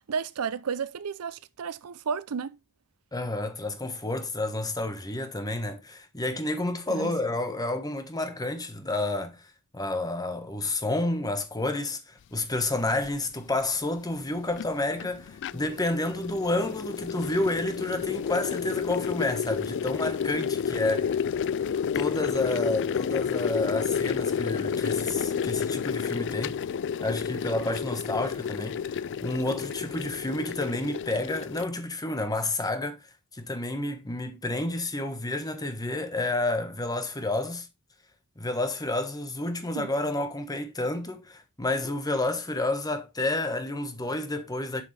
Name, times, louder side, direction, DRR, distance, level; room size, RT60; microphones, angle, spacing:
voice 1, 0.1-2.6 6.9-7.2 39.7-39.9, right 6 dB, 75° right, 0.5 m, -32 dB
voice 2, 3.1-9.5 9.7-21.2 21.9-26.6 27.0-33.0 33.3-37.7 38.4-44.8, left 2 dB, 15° left, 1.2 m, -30 dB
sound 1, 13.0-13.1 14.2-31.7, left 7 dB, 55° left, 0.3 m, -30 dB
6.9 x 6.1 x 3.3 m
head